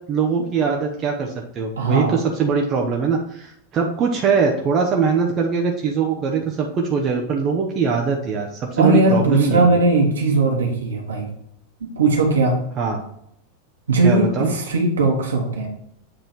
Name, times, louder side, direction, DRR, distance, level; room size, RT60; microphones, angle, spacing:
voice 1, 0.1-9.6 12.8-13.0 14.0-14.5, right 5 dB, 30° right, 1 dB, 0.9 m, -21 dB
voice 2, 1.8-2.2 8.8-11.3 11.8-12.6 13.9-15.7, right 2 dB, 70° right, 1 dB, 1.8 m, -18 dB
7.9 x 3.9 x 4.6 m, 0.75 s
figure-of-eight pair, 90°, 0 cm